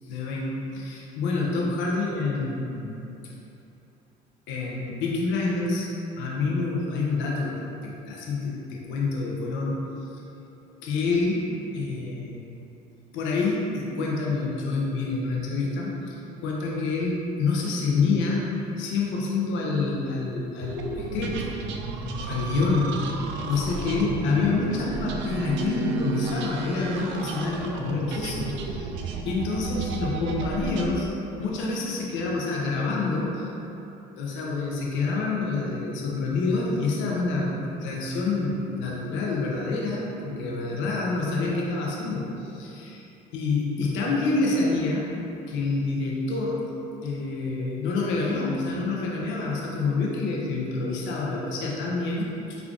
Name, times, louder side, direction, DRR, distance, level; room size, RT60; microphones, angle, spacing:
voice 1, 0.0-3.1 4.5-5.9 6.2-9.8 10.8-12.5 13.1-21.5 22.2-23.0 23.5-28.9 29.3-31.1 31.4-33.5 34.2-43.0 43.3-45.1 45.5-46.7 47.0-52.6, left 3 dB, 65° left, -3 dB, 0.7 m, -27 dB
sound 1, 20.6-30.9, right 4 dB, 60° right, 0.4 m, -32 dB
3.3 x 2.4 x 3.6 m, 2.9 s
hypercardioid pair, 65°, 21 cm